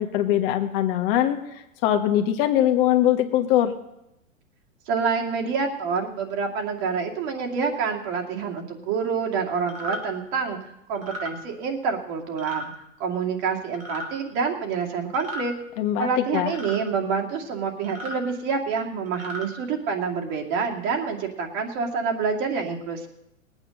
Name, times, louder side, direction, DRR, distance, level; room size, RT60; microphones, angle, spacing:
voice 1, 0.0-1.4 1.8-3.7 15.8-16.5, left 11 dB, 45° left, 5 dB, 1.4 m, -22 dB
voice 2, 4.9-10.6 10.9-12.7 13.0-15.5 16.0-23.1, right 5 dB, 40° right, 1 dB, 2.5 m, -27 dB
sound 1, 9.7-10.0 11.0-11.3 12.4-12.7 13.7-14.1 15.1-15.5 16.5-16.8 17.8-18.2 19.1-19.5, equal, 90° right, 3.5 m, -35 dB
19.0 x 8.9 x 6.5 m, 0.87 s
hypercardioid pair, 110°, 40 cm